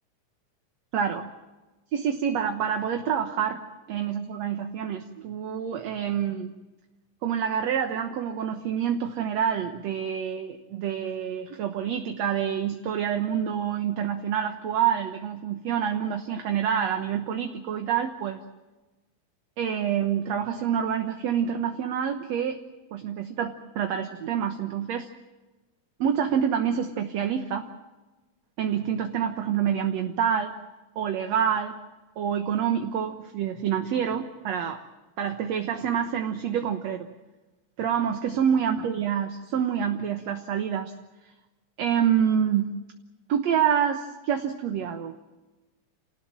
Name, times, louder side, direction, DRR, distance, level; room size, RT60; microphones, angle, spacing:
voice 1, 1.9-3.6 3.9-6.5 7.2-18.4 19.6-22.6 22.9-25.1 26.0-27.7 28.6-30.5 31.0-31.7 32.2-34.8 35.2-37.1 37.8-40.9 41.8-42.7 43.3-45.2, right 8 dB, 60° right, 6 dB, 2.2 m, -27 dB
29.0 x 19.0 x 7.6 m, 1.2 s
omnidirectional pair, 3.7 m